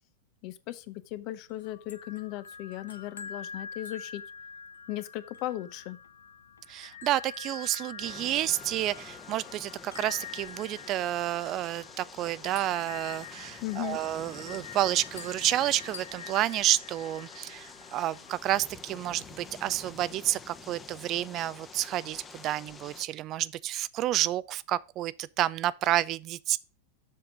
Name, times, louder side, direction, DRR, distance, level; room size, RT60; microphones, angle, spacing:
voice 1, 0.4-4.2 4.9-6.0 13.6-14.0, left 15 dB, 45° left, 0.7 m, -37 dB
sound 1, 1.5-18.4, left 6 dB, 70° left, 0.7 m, -46 dB
voice 2, 6.7-26.6, right 14 dB, 35° right, 0.4 m, -30 dB
sound 2, 8.0-23.1, left 4 dB, 20° left, 1.0 m, -48 dB
7.4 x 5.9 x 4.9 m
figure-of-eight pair, 90°, 0 cm